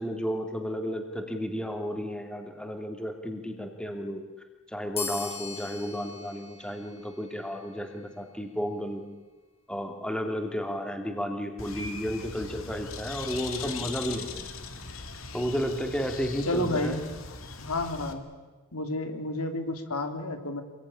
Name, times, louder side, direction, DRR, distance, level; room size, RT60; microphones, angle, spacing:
voice 1, 0.0-4.2 4.7-9.0 9.7-14.4 15.3-17.0, equal, 5° left, 4 dB, 2.7 m, -32 dB
sound 1, 5.0-8.0, left 5 dB, 25° left, 3.0 m, -40 dB
Bird, 11.6-18.1, left 4 dB, 65° left, 2.5 m, -40 dB
voice 2, 16.5-17.0 17.6-18.2 18.7-20.6, left 2 dB, 90° left, 6 dB, 3.1 m, -30 dB
27.0 x 21.5 x 10.0 m, 1.3 s
head